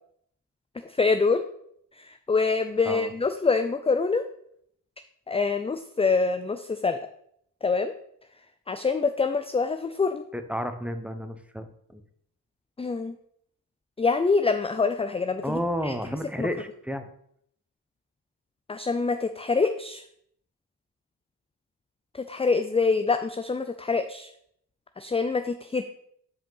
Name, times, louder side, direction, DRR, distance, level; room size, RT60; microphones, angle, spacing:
voice 1, 1.0-1.4 2.0-4.2 5.3-7.0 7.6-7.9 8.7-10.2 12.8-13.1 14.0-15.9 16.4-16.5 18.7-20.0 22.2-24.3 25.0-25.8, left 4 dB, 15° left, 9 dB, 0.4 m, -25 dB
voice 2, 10.3-12.0 15.4-17.1, equal, 5° right, 8 dB, 0.8 m, -31 dB
5.7 x 5.1 x 5.5 m, 0.70 s
cardioid pair, 50°, 42 cm